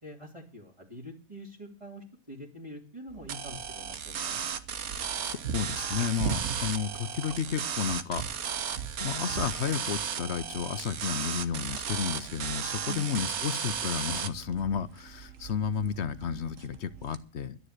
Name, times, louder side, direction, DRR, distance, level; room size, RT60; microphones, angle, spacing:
voice 1, 0.0-4.4 12.9-13.2, equal, 20° right, -4 dB, 2.8 m, -45 dB
sound 1, 3.1-17.2, right 7 dB, 65° right, 1.5 m, -42 dB
sound 2, 3.3-14.3, right 7 dB, 80° right, 1.5 m, -35 dB
voice 2, 5.2-8.6 9.0-17.6, left 7 dB, 55° left, 15 dB, 1.1 m, -32 dB
12.5 x 10.5 x 6.6 m, 0.38 s
omnidirectional pair, 1.5 m